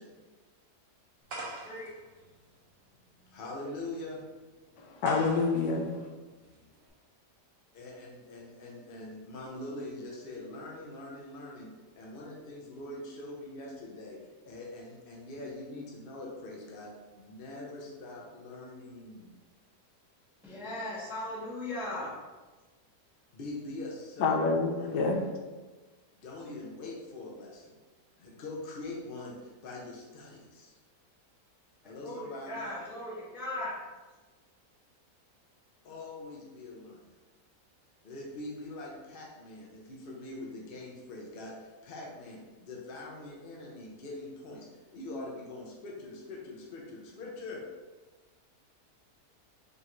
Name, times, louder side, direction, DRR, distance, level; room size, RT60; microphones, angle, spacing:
sound 1, 1.3-6.9, right 2 dB, 45° right, 0.8 m, -45 dB
voice 1, 3.3-4.2 7.7-11.7 11.9-14.2 14.5-16.9 17.1-19.3 23.3-24.3 24.8-25.0 26.1-27.7 28.2-30.8 31.8-32.6 35.8-37.0 38.0-47.6, left 2 dB, 55° left, -2 dB, 0.6 m, -43 dB
voice 2, 4.8-6.1 24.2-25.2, left 4 dB, 80° left, 1 dB, 1.2 m, -28 dB
voice 3, 20.4-22.1 32.0-33.8, left 1 dB, ahead, -7 dB, 0.5 m, -37 dB
5.1 x 2.5 x 3.0 m, 1.3 s
omnidirectional pair, 1.8 m